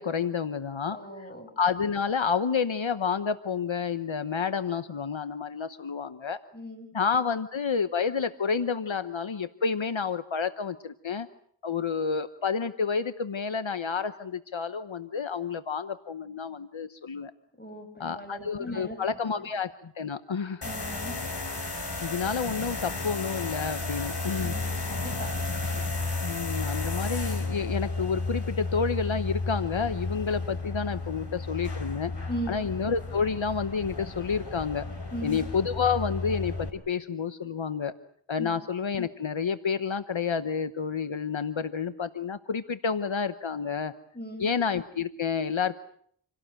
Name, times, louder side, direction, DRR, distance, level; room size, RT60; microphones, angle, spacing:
voice 1, 0.0-6.4 6.9-11.3 11.6-17.3 18.0-20.6 22.0-24.6 25.7-25.8 26.2-32.1 32.5-34.9 35.2-37.9 38.3-43.9 44.4-45.8, left 6 dB, 75° left, 11 dB, 1.0 m, -29 dB
voice 2, 0.9-1.5 6.5-6.9 17.6-19.0 19.4-19.5 20.6-21.1 23.8-23.9 24.4-25.3 32.3-32.6 35.1-35.4 38.4-38.5 44.1-44.5, equal, 20° left, 4 dB, 7.6 m, -38 dB
sound 1, 20.6-36.7, left 3 dB, 60° left, 4.0 m, -33 dB
28.0 x 17.5 x 8.9 m, 0.64 s
wide cardioid pair, 50°, 47 cm